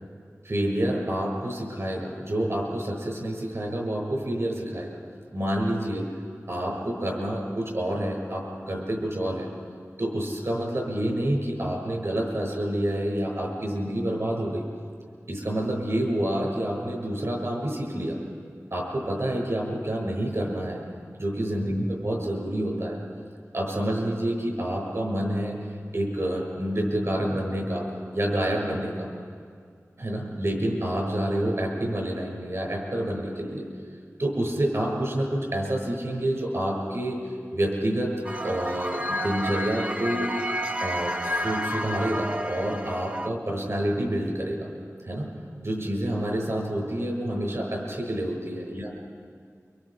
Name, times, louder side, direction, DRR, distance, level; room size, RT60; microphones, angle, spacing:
voice 1, 0.4-5.0 5.3-6.1 6.5-9.5 10.0-14.7 15.3-18.2 18.7-20.9 21.2-23.0 23.5-25.7 25.9-27.9 28.1-29.1 30.0-33.7 34.2-37.2 37.5-38.2 38.4-40.3 40.8-44.7 45.0-45.4 45.6-48.9, right 1 dB, 60° right, 0 dB, 7.0 m, -28 dB
sound 1, 38.2-43.3, equal, 25° right, 0.7 m, -30 dB
29.0 x 25.5 x 5.2 m, 2.1 s
wide cardioid pair, 60°, 5 cm